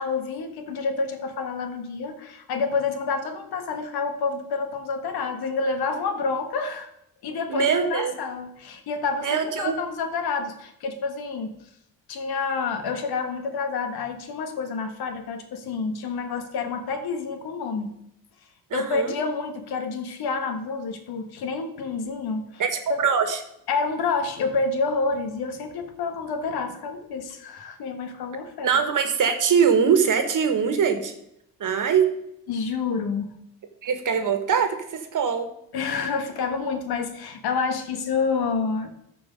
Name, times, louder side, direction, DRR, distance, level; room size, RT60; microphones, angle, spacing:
voice 1, 0.0-6.9 7.2-11.5 12.1-17.9 18.7-22.6 22.9-23.0 23.7-28.7 32.5-33.3 35.7-38.9, left 4 dB, 80° left, 7 dB, 1.4 m, -28 dB
voice 2, 7.5-8.1 9.2-9.8 18.7-19.1 22.6-23.4 28.6-31.1 31.6-32.1 33.8-35.5, right 7 dB, 55° right, 8 dB, 1.5 m, -22 dB
13.5 x 4.6 x 5.1 m, 0.79 s
cardioid pair, 95°, 37 cm